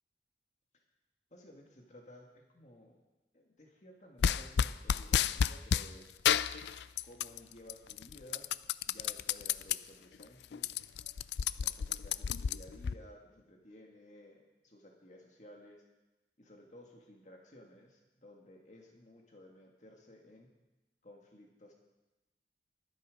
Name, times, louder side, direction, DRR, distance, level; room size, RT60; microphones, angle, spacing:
voice 1, 1.3-3.0 3.3-6.1 6.8-8.5 8.9-10.7 11.6-15.8 16.4-20.5 21.0-21.7, left 1 dB, 40° left, 0 dB, 1.9 m, -56 dB
sound 1, 4.2-5.9 6.2-7.4 7.7-9.8 10.2-10.3 10.5-12.9, left 8 dB, 75° left, 0.4 m, -31 dB
23.5 x 8.5 x 5.3 m, 1.1 s
head